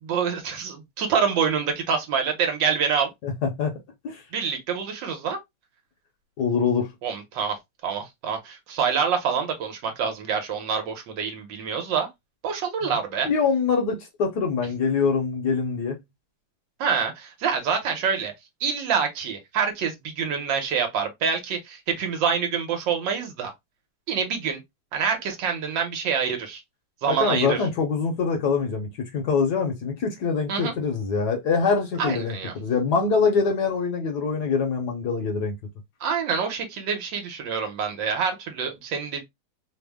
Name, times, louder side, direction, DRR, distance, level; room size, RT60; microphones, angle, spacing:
voice 1, 0.0-3.1 4.3-5.4 7.0-7.6 7.8-12.1 12.4-13.3 16.8-18.3 18.6-23.5 24.1-24.6 24.9-26.6 27.0-27.6 30.5-30.7 32.0-32.5 36.0-39.2, right 6 dB, 70° right, 1.5 m, -26 dB
voice 2, 3.2-3.8 4.0-4.2 6.4-6.9 12.8-13.0 13.2-16.0 27.1-35.5, left 5 dB, 65° left, 1.1 m, -24 dB
3.4 x 2.0 x 3.3 m
omnidirectional pair, 2.2 m